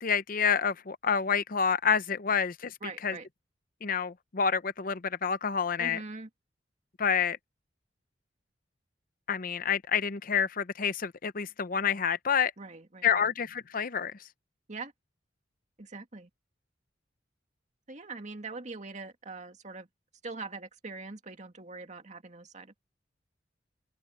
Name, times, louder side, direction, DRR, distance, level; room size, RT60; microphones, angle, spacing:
voice 1, 0.0-2.7 3.0-3.2 3.8-6.0 7.0-7.4 9.3-12.5 13.0-14.1, left 7 dB, 50° left, 0.7 m, -28 dB
voice 2, 2.8-3.3 5.8-6.3 12.6-13.3 14.7-14.9 15.8-16.3 17.9-19.9 20.2-22.8, right 3 dB, 40° right, 2.1 m, -42 dB
open air
head